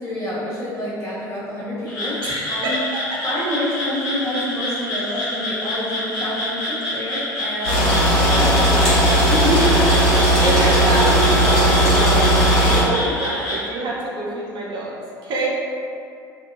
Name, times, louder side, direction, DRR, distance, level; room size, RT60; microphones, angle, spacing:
voice 1, 0.0-2.1 2.5-2.8 3.2-7.9 8.3-10.0, equal, 25° left, -8 dB, 1.3 m, -27 dB
Frog, 1.9-13.6, left 1 dB, 85° left, 0.9 m, -27 dB
voice 2, 2.2-2.8 3.1-3.4 5.0-5.3 9.7-10.0 10.4-15.5, right 2 dB, 50° right, -5 dB, 0.6 m, -26 dB
sound 1, 7.6-12.8, right 1 dB, 65° left, 1.3 m, -16 dB
2.7 x 2.1 x 3.0 m, 2.4 s
hypercardioid pair, 70°, 10 cm